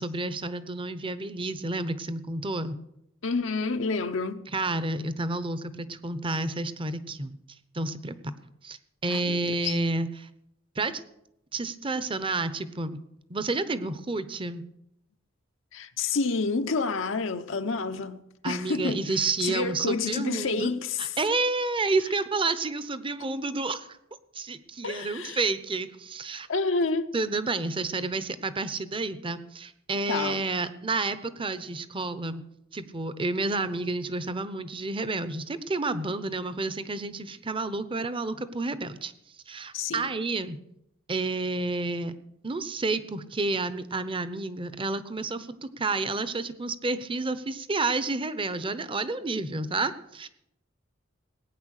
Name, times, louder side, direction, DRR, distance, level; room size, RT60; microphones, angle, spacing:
voice 1, 0.0-2.8 4.5-7.4 7.7-8.3 8.6-8.8 9.0-10.3 10.8-11.0 11.5-13.0 13.3-14.6 18.4-20.7 21.0-23.9 24.3-26.5 27.1-32.4 32.7-39.1 39.5-40.6 41.1-42.1 42.4-50.3, right 3 dB, 25° right, 0.9 m, -30 dB
voice 2, 3.2-4.5 9.1-9.8 15.7-21.2 24.8-25.4 26.5-27.1 30.1-30.4 39.7-40.2, left 4 dB, 70° left, 0.8 m, -29 dB
19.0 x 9.4 x 6.5 m
head